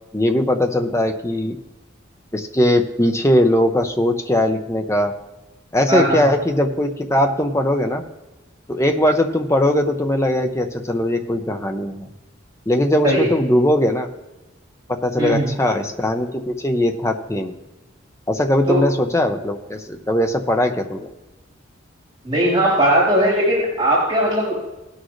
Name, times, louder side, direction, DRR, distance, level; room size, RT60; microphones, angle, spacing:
voice 1, 0.1-1.6 2.3-5.1 5.7-8.0 8.7-12.1 12.7-14.1 14.9-17.5 18.3-21.1, left 1 dB, 15° left, 4 dB, 0.8 m, -20 dB
voice 2, 5.9-6.2 13.0-13.3 15.2-15.5 18.7-18.8 22.2-24.5, right 1 dB, 20° right, -8 dB, 3.7 m, -18 dB
19.0 x 6.4 x 3.2 m, 1.1 s
head